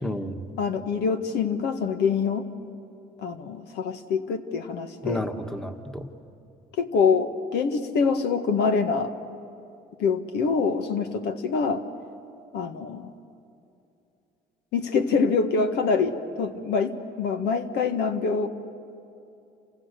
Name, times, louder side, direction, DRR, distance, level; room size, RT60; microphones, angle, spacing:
voice 1, 0.0-0.4 5.0-6.1, left 1 dB, 5° left, 6 dB, 1.6 m, -31 dB
voice 2, 0.6-2.4 3.2-5.2 6.8-9.1 10.0-11.9 12.5-13.1 14.7-18.5, left 5 dB, 80° left, 8 dB, 1.6 m, -25 dB
29.5 x 27.0 x 6.9 m, 2.7 s
cardioid pair, 110°, 17 cm